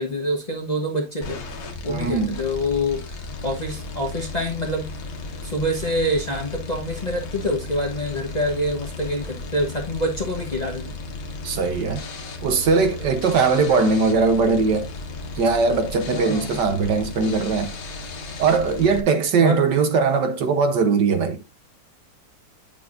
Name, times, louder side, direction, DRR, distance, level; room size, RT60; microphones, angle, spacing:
voice 1, 0.0-1.4 1.8-4.9 5.4-11.0 16.1-16.6 19.4-19.6, left 1 dB, 25° left, 1.0 m, -26 dB
sound 1, 1.2-19.0, left 3 dB, 85° left, 2.0 m, -35 dB
voice 2, 1.9-2.3 11.4-12.0 12.4-14.9 15.4-17.7 18.4-21.4, right 4 dB, 65° right, 1.5 m, -20 dB
9.0 x 6.9 x 2.5 m
omnidirectional pair, 2.1 m